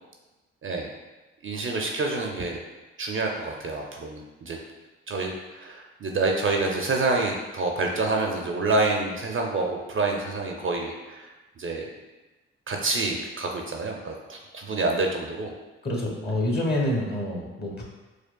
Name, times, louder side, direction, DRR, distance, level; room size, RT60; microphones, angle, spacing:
voice 1, 1.4-2.6 3.0-4.6 5.1-11.3 11.6-11.9 12.7-15.5, right 3 dB, 40° right, 1 dB, 0.5 m, -27 dB
voice 2, 15.8-17.8, left 1 dB, 30° left, -1 dB, 1.1 m, -27 dB
4.4 x 2.3 x 2.2 m, 1.1 s
supercardioid pair, 50°, 31 cm